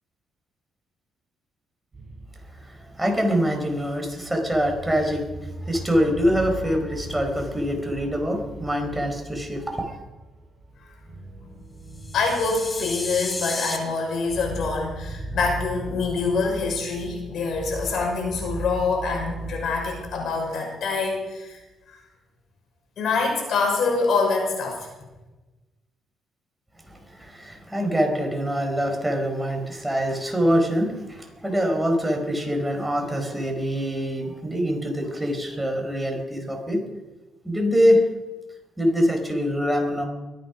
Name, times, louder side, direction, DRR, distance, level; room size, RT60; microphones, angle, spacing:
sound 1, 1.9-20.2, right 2 dB, 35° right, 7.4 m, -38 dB
voice 1, 3.0-5.2 5.7-10.0 27.2-36.8 37.4-38.0 38.8-40.0, equal, 10° right, 2 dB, 4.6 m, -24 dB
sound 2, 12.0-13.8, left 2 dB, 25° left, 2.7 m, -32 dB
voice 2, 12.1-21.6 21.9-22.0 23.0-24.9, left 4 dB, 70° left, 2 dB, 5.8 m, -25 dB
23.0 x 9.3 x 6.0 m, 1.1 s
cardioid pair, 90°, 0 cm